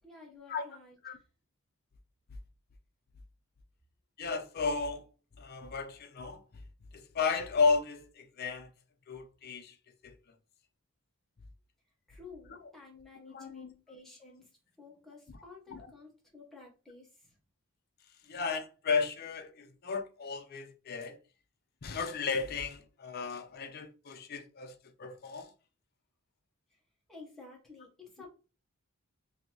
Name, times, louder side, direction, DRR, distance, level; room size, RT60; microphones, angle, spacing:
voice 1, 0.0-1.2 12.1-17.4 26.7-26.8 27.1-28.3, left 3 dB, ahead, 1.0 m, -53 dB
voice 2, 4.2-5.1 5.4-6.4 6.9-8.7 9.1-9.8 10.0-10.2 13.2-13.7 15.3-15.4 15.7-15.9 18.2-21.2 21.8-25.5, left 5 dB, 45° left, 0.5 m, -34 dB
3.8 x 2.7 x 2.9 m
head